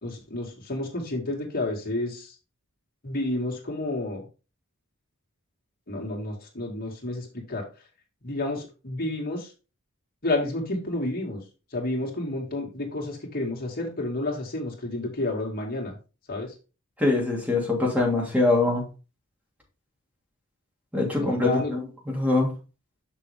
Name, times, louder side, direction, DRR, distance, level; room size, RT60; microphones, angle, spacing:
voice 1, 0.0-2.3 3.0-4.2 5.9-7.6 8.2-9.5 10.2-11.4 11.7-15.9 16.3-16.5 21.1-21.8, left 2 dB, 45° left, 0 dB, 2.5 m, -30 dB
voice 2, 17.0-18.8 20.9-22.5, left 2 dB, 5° right, -1 dB, 2.7 m, -23 dB
6.8 x 6.1 x 3.6 m, 0.32 s
head